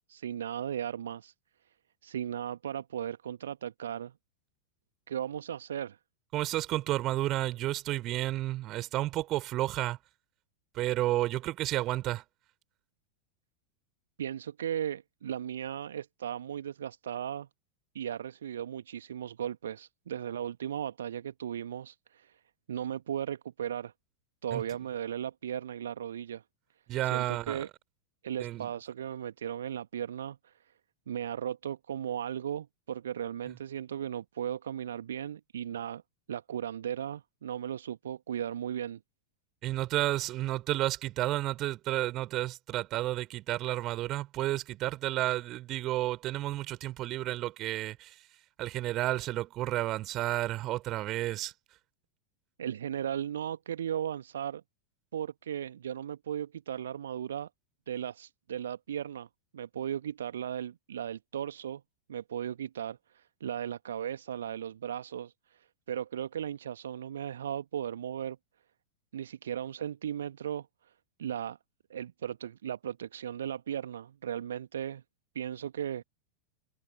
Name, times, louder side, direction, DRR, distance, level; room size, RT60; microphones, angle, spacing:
voice 1, 0.1-1.3 2.0-4.1 5.1-6.0 14.2-17.5 17.9-22.4 22.7-23.9 24.4-26.4 27.0-27.7 28.2-30.5 31.1-36.0 36.3-39.0 52.6-54.6 55.1-57.5 57.9-59.3 59.5-61.8 62.1-68.4 69.1-70.9 71.2-71.6 71.9-75.0 75.3-76.0, right 9 dB, 65° right, 1.2 m, -36 dB
voice 2, 6.3-10.0 10.7-12.2 24.5-24.6 26.9-27.6 28.4-28.7 39.6-48.1 48.6-51.5, right 15 dB, 35° right, 3.1 m, -31 dB
figure-of-eight pair, 90°, 0 cm